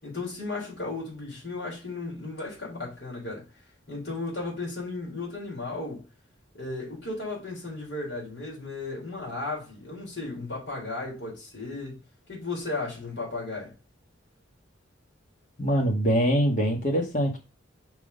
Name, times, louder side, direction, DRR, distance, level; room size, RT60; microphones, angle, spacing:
voice 1, 0.0-3.5 3.9-6.0 6.5-12.0 12.3-13.7, left 3 dB, 60° left, 3.8 m, -35 dB
voice 2, 15.6-17.4, equal, 40° left, 1.8 m, -23 dB
5.7 x 4.1 x 5.3 m
head